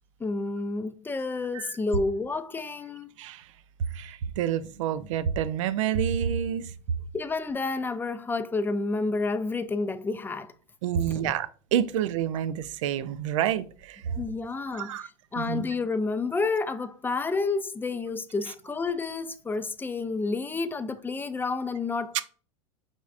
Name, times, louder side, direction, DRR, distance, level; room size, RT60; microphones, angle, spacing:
voice 1, 0.2-3.1 7.1-10.5 11.1-11.3 14.2-22.2, left 3 dB, 10° left, 0.4 m, -30 dB
voice 2, 3.9-6.7 10.8-14.2 14.7-15.1 15.4-15.6 22.1-22.2, right 9 dB, 75° right, 0.4 m, -28 dB
5.2 x 3.5 x 2.4 m
hypercardioid pair, 100°, 16 cm